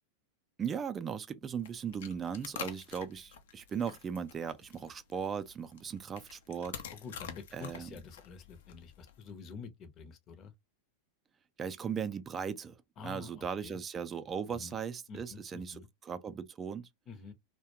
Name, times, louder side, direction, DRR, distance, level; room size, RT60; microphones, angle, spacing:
voice 1, 0.6-6.8 7.5-7.9 11.6-16.9, right 7 dB, 25° right, 0.4 m, -38 dB
sound 1, 1.4-9.3, left 8 dB, 70° left, 0.6 m, -48 dB
voice 2, 6.9-10.5 13.0-13.8 14.5-14.8 15.1-15.9 17.1-17.3, left 5 dB, 35° left, 0.7 m, -48 dB
2.3 x 2.1 x 2.8 m
hypercardioid pair, 105°, 0 cm